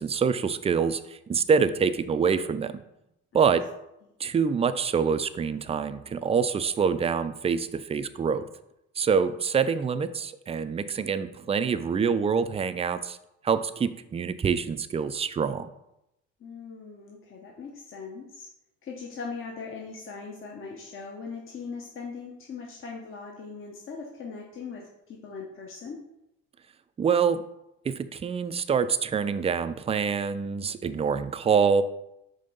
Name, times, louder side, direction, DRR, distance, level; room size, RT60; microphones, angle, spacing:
voice 1, 0.0-2.7 3.3-3.7 4.2-8.4 9.0-13.2 13.4-15.7 27.0-27.4 27.8-31.8, right 6 dB, 20° right, 12 dB, 0.4 m, -26 dB
voice 2, 16.4-18.5 18.8-26.0, left 5 dB, 40° left, 0 dB, 1.0 m, -40 dB
5.2 x 3.3 x 5.4 m, 0.85 s
supercardioid pair, 85°, 33 cm